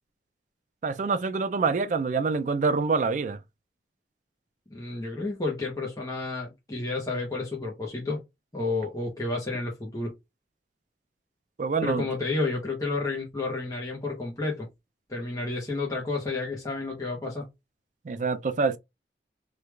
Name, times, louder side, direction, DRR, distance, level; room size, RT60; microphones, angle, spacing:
voice 1, 0.8-3.4 11.6-12.0 18.1-18.8, right 4 dB, 45° right, 0.4 m, -26 dB
voice 2, 4.7-8.2 8.5-10.1 11.8-14.7 15.1-17.5, left 3 dB, 20° left, 0.7 m, -31 dB
3.2 x 2.3 x 3.2 m
head